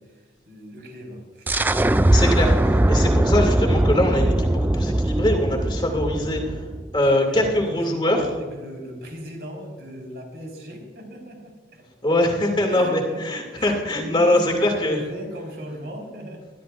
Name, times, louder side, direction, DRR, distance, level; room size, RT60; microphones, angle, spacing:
voice 1, 0.0-1.6 7.0-11.9 12.7-16.4, equal, 60° right, 1 dB, 4.6 m, -37 dB
sound 1, 1.5-7.0, right 1 dB, 10° right, 0.3 m, -20 dB
voice 2, 2.1-6.6 6.9-8.3 12.0-15.0, left 1 dB, 25° left, 1 dB, 2.6 m, -22 dB
23.0 x 13.5 x 2.6 m, 1.4 s
head